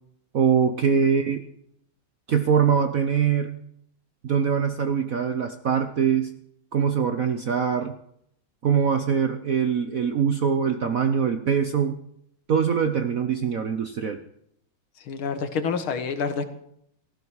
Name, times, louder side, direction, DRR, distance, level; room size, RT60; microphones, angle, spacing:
voice 1, 0.3-1.4 2.3-3.6 4.2-6.3 6.7-7.9 8.6-12.0 12.5-14.2, right 7 dB, 60° right, 8 dB, 0.9 m, -23 dB
voice 2, 0.9-1.3 15.0-16.5, left 5 dB, 70° left, 9 dB, 2.3 m, -29 dB
18.0 x 14.5 x 4.7 m, 0.72 s
omnidirectional pair, 2.4 m